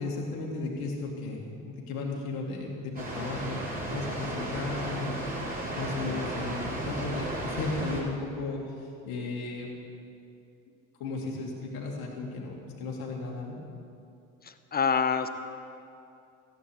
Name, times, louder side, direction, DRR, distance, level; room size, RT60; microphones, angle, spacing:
voice 1, 0.0-3.6 3.9-5.2 5.8-9.7 11.0-13.6, left 3 dB, 60° left, -2 dB, 2.3 m, -35 dB
Water, 2.9-8.0, right 1 dB, 20° right, 4.1 m, -34 dB
voice 2, 14.4-15.3, left 6 dB, 20° left, 10 dB, 1.0 m, -26 dB
16.0 x 8.1 x 8.5 m, 2.5 s
figure-of-eight pair, 55°, 42 cm